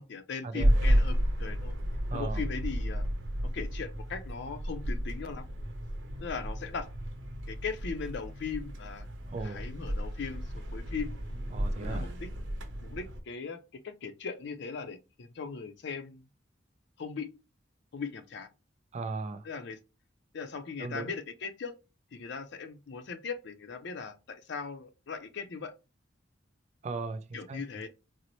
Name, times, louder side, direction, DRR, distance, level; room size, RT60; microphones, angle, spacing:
voice 1, 0.0-1.8 2.1-3.0 3.5-5.5 6.2-6.9 7.5-9.1 9.4-11.2 11.8-12.3 12.8-13.6 13.8-16.3 17.0-17.3 17.9-18.5 19.4-19.8 20.3-21.8 22.1-25.7 27.3-27.9, left 5 dB, 65° left, 0.5 m, -39 dB
sound 1, 0.6-13.2, equal, 85° right, 0.7 m, -32 dB
voice 2, 2.1-2.4 9.3-9.6 11.5-12.1 18.9-19.4 20.8-21.1 26.8-27.6, right 3 dB, 35° right, 0.4 m, -37 dB
4.0 x 2.0 x 2.9 m
head